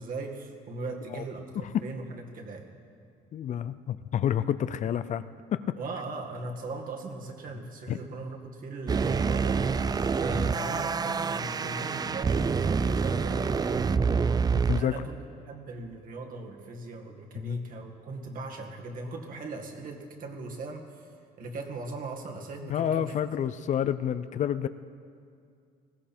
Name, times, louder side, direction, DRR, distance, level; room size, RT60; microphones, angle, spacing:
voice 1, 0.0-2.7 5.8-9.6 10.2-14.1 14.8-21.1 21.4-23.1 23.5-23.6, right 3 dB, 55° right, 1 dB, 2.1 m, -39 dB
voice 2, 3.3-5.2 5.5-5.7 7.9-8.0 14.7-15.0 17.4-17.6 22.7-24.7, left 9 dB, 45° left, 13 dB, 0.5 m, -29 dB
sound 1, 8.9-14.8, right 5 dB, 25° right, 0.4 m, -27 dB
20.0 x 15.5 x 4.4 m, 2.3 s
cardioid pair, 110°, 17 cm